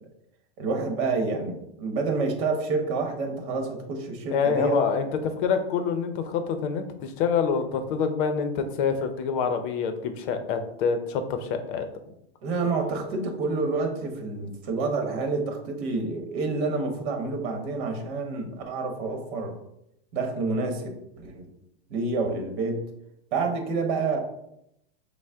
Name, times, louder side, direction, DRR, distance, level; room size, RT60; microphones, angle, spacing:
voice 1, 0.6-4.8 12.4-19.5 20.1-20.9 21.2-21.5 21.9-22.8 23.3-24.2, right 3 dB, 50° right, 4 dB, 1.1 m, -28 dB
voice 2, 4.3-11.9, left 6 dB, 50° left, 8 dB, 0.7 m, -26 dB
6.1 x 2.2 x 3.5 m, 0.80 s
supercardioid pair, 140°, 31 cm